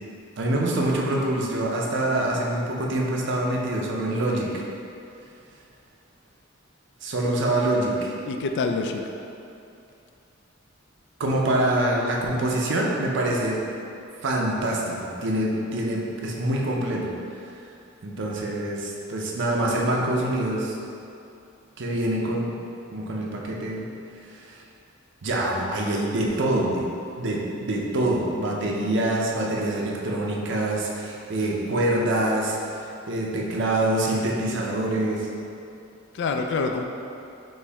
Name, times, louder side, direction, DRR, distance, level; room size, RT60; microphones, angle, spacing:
voice 1, 0.4-4.6 7.0-8.1 11.2-13.6 14.2-17.1 18.0-20.8 21.8-22.6 22.9-23.9 24.3-24.6 25.2-26.9 27.2-35.3, right 1 dB, 65° right, -2 dB, 0.6 m, -25 dB
voice 2, 8.3-9.0 36.1-36.8, left 4 dB, 60° left, 4 dB, 0.3 m, -26 dB
4.3 x 3.1 x 3.4 m, 2.7 s
head